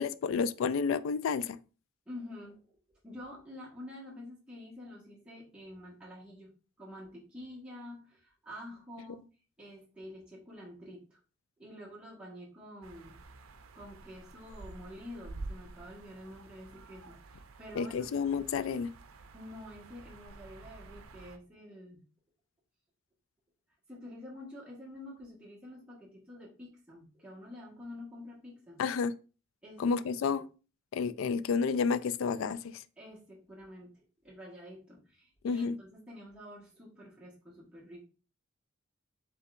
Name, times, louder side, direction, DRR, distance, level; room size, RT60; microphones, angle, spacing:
voice 1, 0.0-1.6 17.8-18.9 28.8-29.1 29.8-30.5 30.9-32.8 35.4-35.8, left 5 dB, 75° left, 0.3 m, -30 dB
voice 2, 2.1-2.8 3.0-6.5 6.8-9.2 9.6-11.2 11.6-13.2 13.7-18.1 19.3-22.0 23.9-28.8 29.6-30.4 33.0-38.1, left 1 dB, 5° right, 1.4 m, -48 dB
sound 1, 12.8-21.4, right 2 dB, 85° right, 0.5 m, -49 dB
5.3 x 3.5 x 2.5 m
head